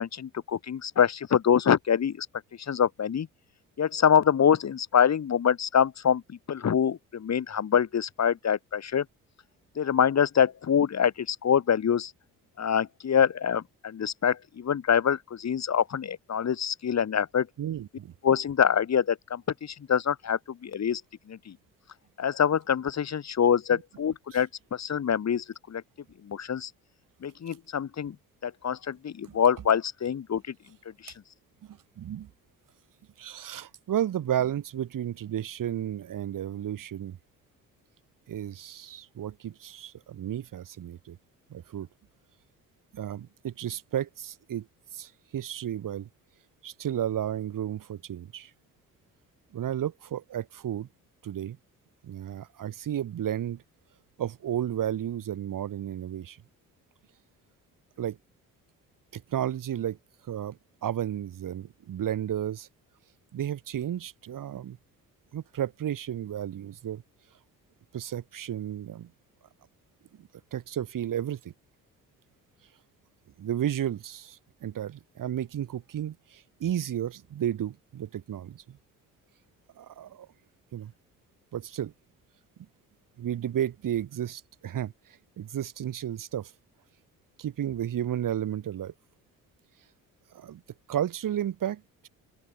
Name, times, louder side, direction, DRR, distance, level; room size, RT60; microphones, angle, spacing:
voice 1, 0.0-2.3 2.6-3.3 3.8-9.1 9.8-12.1 12.6-17.5 18.2-21.0 21.3-21.6 22.2-25.8 26.2-26.7 27.2-28.2 28.4-30.4 31.0-31.1, left 8 dB, 45° left, 2.3 m, -25 dB
voice 2, 17.6-18.1 29.2-29.4 31.6-32.3 33.2-37.2 38.3-41.2 41.5-41.9 42.9-44.7 44.9-46.1 46.6-48.5 49.5-50.9 51.2-51.6 52.0-53.6 54.2-56.4 58.0-58.2 59.1-60.0 60.3-62.7 63.3-64.8 65.3-67.0 67.9-69.1 70.2-71.5 73.4-78.8 79.8-80.3 80.7-80.9 81.5-81.9 83.2-84.9 85.4-86.5 87.4-88.9 90.3-90.6 90.9-92.1, right 10 dB, 60° right, 4.2 m, -33 dB
open air
supercardioid pair, 60°, 36 cm